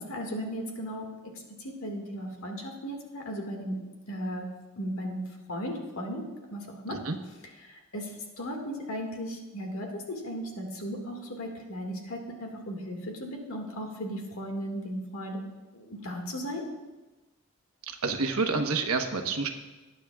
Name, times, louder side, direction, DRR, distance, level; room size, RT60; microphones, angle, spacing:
voice 1, 0.0-3.8 4.1-4.5 4.8-7.0 7.6-15.4 15.7-16.6, equal, 75° left, 1 dB, 1.9 m, -36 dB
voice 2, 17.9-19.5, right 4 dB, 80° right, 5 dB, 1.1 m, -28 dB
20.0 x 9.2 x 2.4 m, 1.1 s
head